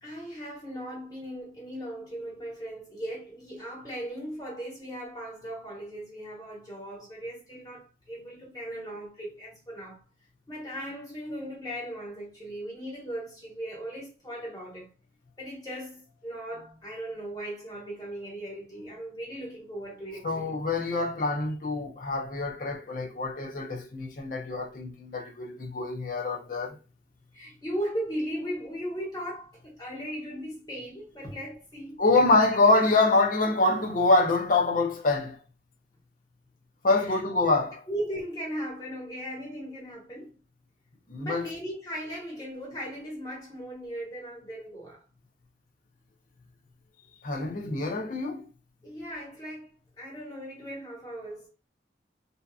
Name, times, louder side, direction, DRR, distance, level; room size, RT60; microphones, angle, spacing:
voice 1, 0.0-10.0 10.5-14.9 15.4-20.6 27.3-32.3 37.0-37.2 37.9-40.4 41.2-45.0 48.8-51.5, equal, 20° left, 1.2 m, -38 dB
voice 2, 20.2-26.8 32.0-35.4 36.8-37.8 41.1-41.5 47.2-48.5, left 2 dB, 50° left, 0.6 m, -25 dB
2.7 x 2.3 x 2.3 m
head